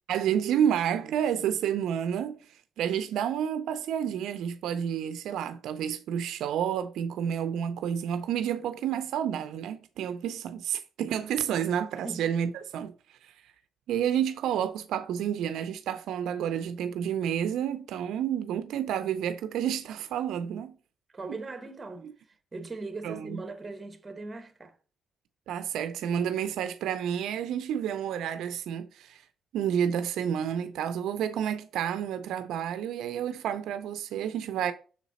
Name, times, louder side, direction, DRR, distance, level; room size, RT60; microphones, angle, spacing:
voice 1, 0.1-2.5 2.8-12.9 13.2-13.3 13.9-20.8 22.0-22.1 23.0-23.4 25.5-29.2 29.5-34.7, right 9 dB, 80° right, 0.5 m, -30 dB
voice 2, 12.0-12.5 21.1-22.1 22.5-24.8, right 3 dB, 25° right, 1.2 m, -39 dB
6.3 x 4.1 x 4.0 m
cardioid pair, 90°, 0 cm